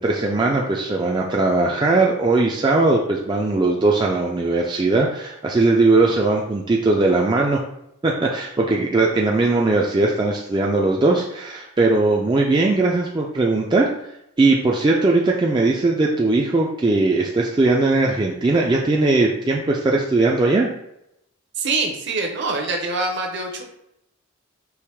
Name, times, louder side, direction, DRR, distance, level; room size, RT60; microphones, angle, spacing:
voice 1, 0.0-7.6 8.0-13.9 14.4-20.7, right 3 dB, 20° right, -1 dB, 0.3 m, -19 dB
voice 2, 21.6-23.6, right 3 dB, 55° right, 2 dB, 0.8 m, -24 dB
4.8 x 3.0 x 3.4 m, 0.82 s
head